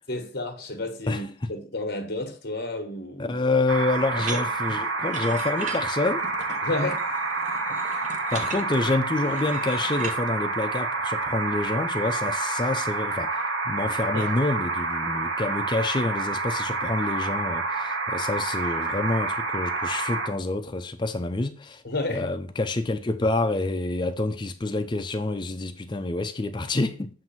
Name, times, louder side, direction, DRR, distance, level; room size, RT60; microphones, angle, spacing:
voice 1, 0.1-3.3 4.3-4.4 6.6-7.0 14.1-14.3 21.8-22.3, left 2 dB, 50° left, 1.3 m, -31 dB
voice 2, 1.1-1.5 3.2-6.2 8.3-21.8 22.1-27.1, left 2 dB, 25° left, 0.4 m, -27 dB
sound 1, 3.7-20.3, right 3 dB, 65° right, 1.1 m, -28 dB
sound 2, 4.2-10.2, right 4 dB, 40° right, 0.8 m, -39 dB
7.6 x 2.6 x 5.7 m
head